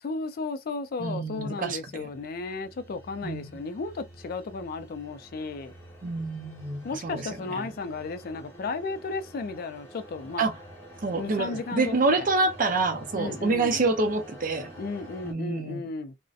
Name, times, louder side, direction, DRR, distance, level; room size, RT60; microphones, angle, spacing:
voice 1, 0.0-5.7 6.8-10.5 11.2-12.3 13.2-13.8 14.8-16.2, left 3 dB, 55° left, 0.4 m, -34 dB
voice 2, 1.0-2.1 3.2-3.6 6.0-7.7 10.4-10.6 11.0-14.7 15.2-15.8, right 3 dB, 45° right, 0.5 m, -27 dB
sound 1, 1.2-15.3, right 1 dB, 10° left, 1.1 m, -48 dB
2.6 x 2.0 x 2.4 m
head